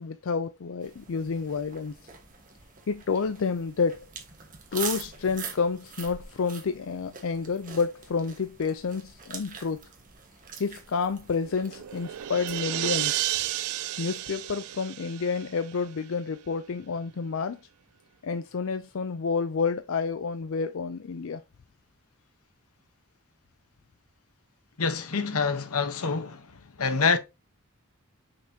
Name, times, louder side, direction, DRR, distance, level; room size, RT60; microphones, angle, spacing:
voice 1, 0.0-2.0 2.9-4.0 4.7-9.8 10.6-13.3 14.0-17.6 18.2-21.4, left 5 dB, 60° left, 0.4 m, -29 dB
sound 1, 0.8-12.6, right 6 dB, 35° right, 1.4 m, -43 dB
sound 2, 11.4-16.0, right 15 dB, 75° right, 0.4 m, -32 dB
voice 2, 24.8-26.5 26.8-27.2, left 5 dB, 80° left, 1.0 m, -26 dB
6.4 x 6.0 x 2.8 m
head